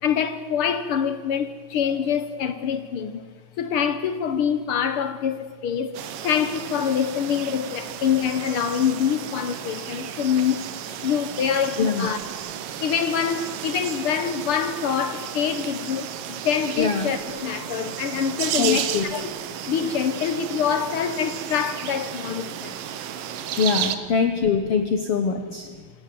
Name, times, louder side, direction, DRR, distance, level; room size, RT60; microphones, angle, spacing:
voice 1, 0.0-3.2 3.6-10.7 11.0-12.2 12.8-19.3 19.7-22.8 25.5-25.9, left 8 dB, 75° left, 1.2 m, -25 dB
sound 1, 5.9-24.0, right 10 dB, 80° right, 2.9 m, -33 dB
voice 2, 11.8-12.1 16.8-17.1 18.6-19.1 23.6-25.7, left 6 dB, 55° left, 1.9 m, -23 dB
26.5 x 19.0 x 7.8 m
omnidirectional pair, 4.0 m